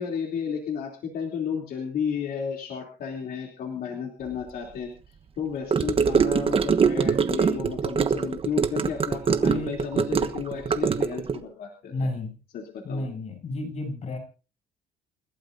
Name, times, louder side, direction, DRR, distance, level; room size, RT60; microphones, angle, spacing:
voice 1, 0.0-12.1 12.5-13.1, left 6 dB, 65° left, 1 dB, 3.2 m, -33 dB
Gurgling / Car passing by / Sink (filling or washing), 5.7-11.4, right 6 dB, 35° right, 1.1 m, -23 dB
voice 2, 11.9-12.3 12.8-14.2, left 2 dB, 45° left, 5 dB, 7.3 m, -31 dB
29.0 x 12.0 x 2.7 m, 0.35 s
cardioid pair, 110°, 17 cm